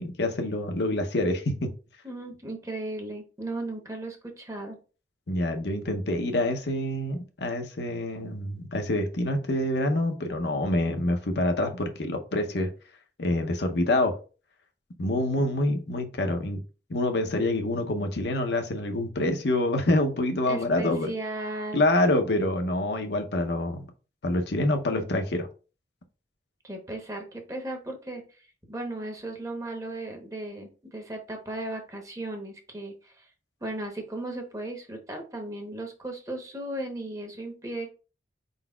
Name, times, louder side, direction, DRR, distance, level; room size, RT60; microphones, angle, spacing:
voice 1, 0.0-1.7 5.3-12.7 13.2-14.2 15.0-16.6 16.9-21.1 21.7-23.9 24.2-25.5, left 1 dB, 70° left, 5 dB, 0.7 m, -26 dB
voice 2, 2.0-4.8 20.5-21.8 26.6-33.3 33.6-37.9, right 2 dB, 20° right, 3 dB, 0.9 m, -36 dB
4.5 x 4.0 x 2.3 m, 0.34 s
head